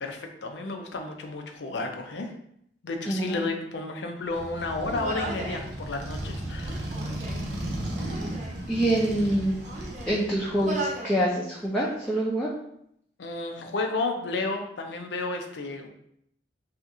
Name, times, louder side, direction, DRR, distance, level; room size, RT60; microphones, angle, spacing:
voice 1, 0.0-2.3 2.8-6.9 13.2-15.9, left 3 dB, 80° left, 4 dB, 0.5 m, -32 dB
voice 2, 3.1-3.4 8.1-8.2 8.7-9.6 10.1-12.5, right 1 dB, 5° left, -6 dB, 0.4 m, -26 dB
Motorcycle, 4.3-11.0, right 1 dB, 75° right, 0.7 m, -35 dB
Human voice, 4.8-5.7 6.6-7.5 7.9-8.6 9.3-10.2 10.6-11.2 11.5-12.2, right 1 dB, 45° right, 0.7 m, -37 dB
2.8 x 2.5 x 3.6 m, 0.73 s
head